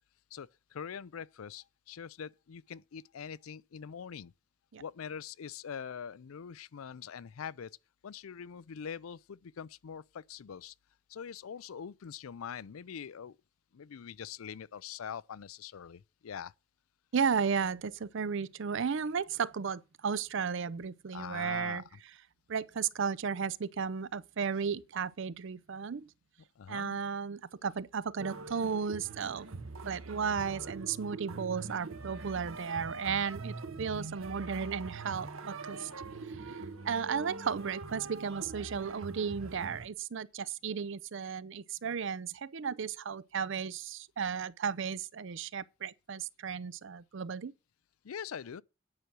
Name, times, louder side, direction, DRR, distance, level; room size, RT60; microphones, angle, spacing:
voice 1, 0.3-4.3 4.8-7.7 8.0-10.7 11.1-13.4 13.7-16.5 21.1-22.0 26.6-27.0 48.0-48.6, left 7 dB, 90° left, 0.5 m, -43 dB
voice 2, 17.1-21.8 22.5-26.1 26.7-29.5 29.9-35.9 36.3-47.5, right 6 dB, 60° right, 0.5 m, -34 dB
sound 1, 28.2-39.9, right 3 dB, 85° right, 1.3 m, -43 dB
9.6 x 6.0 x 6.2 m
head